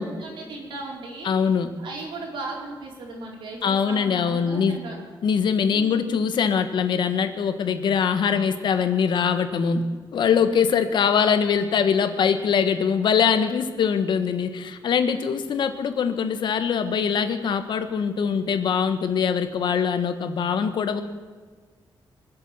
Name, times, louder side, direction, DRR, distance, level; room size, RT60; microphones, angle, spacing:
voice 1, 0.0-1.3 1.8-5.0 5.7-6.2 10.2-10.5, right 3 dB, 85° right, -1 dB, 4.4 m, -37 dB
voice 2, 1.2-1.7 3.6-4.8 5.2-9.8 10.1-21.0, left 7 dB, 70° left, 9 dB, 1.3 m, -22 dB
24.0 x 8.1 x 7.4 m, 1.5 s
wide cardioid pair, 140°, 8 cm